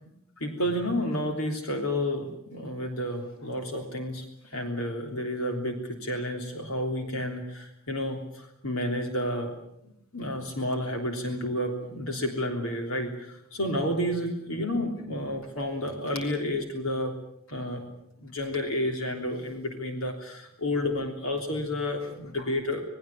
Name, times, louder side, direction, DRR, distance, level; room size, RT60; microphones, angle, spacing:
voice 1, 0.4-9.5 9.8-17.1 17.5-17.8 18.2-22.8, left 1 dB, 70° left, 3 dB, 3.4 m, -31 dB
27.0 x 20.5 x 7.3 m, 0.77 s
head